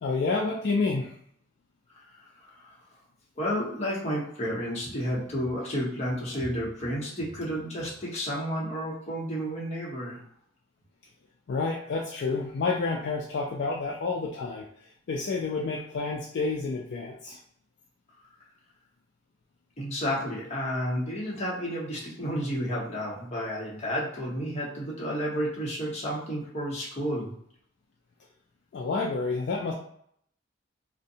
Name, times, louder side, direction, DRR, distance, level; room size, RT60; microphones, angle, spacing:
voice 1, 0.0-1.1 11.5-14.7 15.1-17.4 28.7-29.7, left 3 dB, 60° left, -2 dB, 0.3 m, -29 dB
voice 2, 3.4-10.2 19.8-27.3, equal, 35° left, -5 dB, 0.8 m, -31 dB
2.5 x 2.1 x 2.7 m, 0.67 s
head